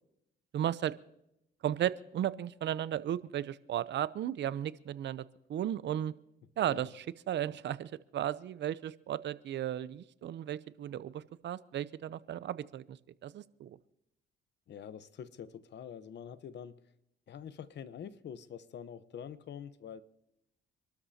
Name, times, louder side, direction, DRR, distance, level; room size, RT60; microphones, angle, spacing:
voice 1, 0.5-1.0 1.6-5.2 5.5-6.1 6.6-13.0 13.2-13.7, right 11 dB, 65° right, 0.7 m, -35 dB
voice 2, 14.7-16.8 17.3-20.0, left 8 dB, 60° left, 0.9 m, -46 dB
27.0 x 13.0 x 2.8 m
cardioid pair, 90°, 20 cm